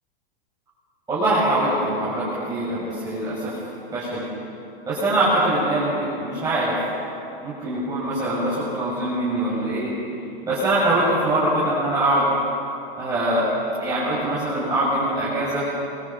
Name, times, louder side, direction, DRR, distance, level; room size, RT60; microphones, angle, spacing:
voice 1, 1.1-3.6 3.9-4.3 4.9-6.8 7.4-9.9 10.5-12.3 13.0-13.5 13.8-15.7, right 1 dB, 10° right, -10 dB, 7.3 m, -23 dB
28.5 x 25.0 x 5.6 m, 2.8 s
hypercardioid pair, 150°, 30 cm